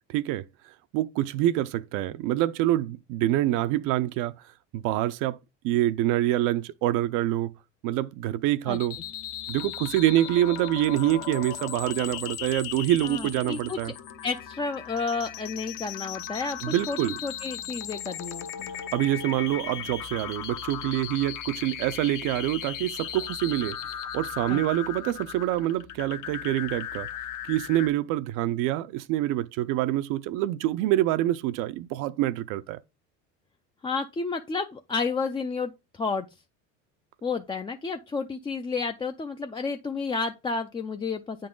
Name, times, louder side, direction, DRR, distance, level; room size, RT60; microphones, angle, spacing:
voice 1, 0.1-0.4 0.9-4.3 4.7-5.4 5.6-7.5 7.8-9.0 9.5-13.9 16.6-17.2 18.9-23.8 24.1-27.1 27.5-32.8, right 14 dB, 55° right, 0.5 m, -26 dB
sound 1, 8.7-27.9, left 10 dB, 55° left, 1.0 m, -37 dB
voice 2, 13.0-13.8 14.2-18.7 24.5-24.6 33.8-36.3 37.2-41.5, left 4 dB, 15° left, 0.4 m, -31 dB
8.4 x 3.9 x 3.7 m
hypercardioid pair, 90°, 38 cm